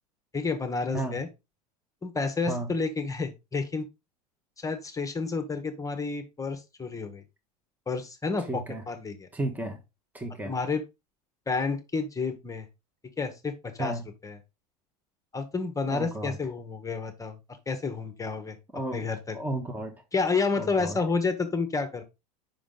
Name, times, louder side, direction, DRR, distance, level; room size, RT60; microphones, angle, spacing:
voice 1, 0.3-1.3 2.0-3.9 4.6-7.2 7.9-9.3 10.4-10.8 11.5-12.7 13.2-13.9 14.2-14.4 15.3-17.4 17.7-18.6 18.9-19.4 20.1-22.0, left 4 dB, 15° left, 1.0 m, -30 dB
voice 2, 8.4-8.8 9.3-9.8 10.1-10.5 13.8-14.0 15.9-16.4 18.7-19.0 19.3-19.9 20.5-21.0, right 2 dB, 10° right, 1.0 m, -33 dB
5.3 x 5.0 x 3.8 m
hypercardioid pair, 90°, 21 cm